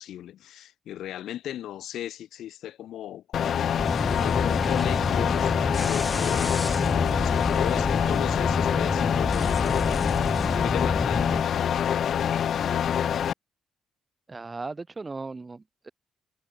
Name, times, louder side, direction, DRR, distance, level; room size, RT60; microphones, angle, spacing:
voice 1, 0.0-10.0 10.6-12.9, left 12 dB, 75° left, 2.1 m, -37 dB
sound 1, 3.3-13.3, left 9 dB, 60° left, 0.9 m, -25 dB
sound 2, 3.8-11.4, left 2 dB, 15° left, 0.6 m, -29 dB
voice 2, 14.3-15.9, right 3 dB, 25° right, 3.8 m, -37 dB
cardioid pair, 90°, 0 cm